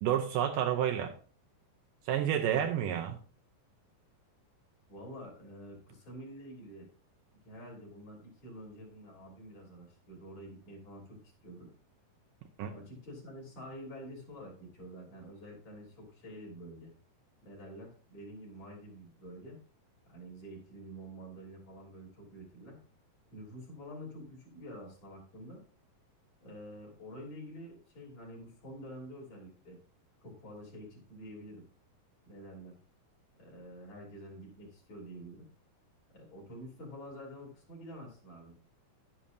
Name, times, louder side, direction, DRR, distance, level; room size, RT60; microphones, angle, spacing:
voice 1, 0.0-1.1 2.1-3.2 12.6-12.7, right 10 dB, 75° right, 5 dB, 2.2 m, -29 dB
voice 2, 4.9-6.9 7.4-11.7 12.7-16.9 17.4-19.6 20.1-22.8 23.3-25.6 26.4-29.8 30.2-31.7 32.3-32.8 33.4-35.5 36.1-38.6, equal, 50° left, -3 dB, 4.6 m, -48 dB
11.0 x 10.5 x 2.7 m, 0.42 s
omnidirectional pair, 4.3 m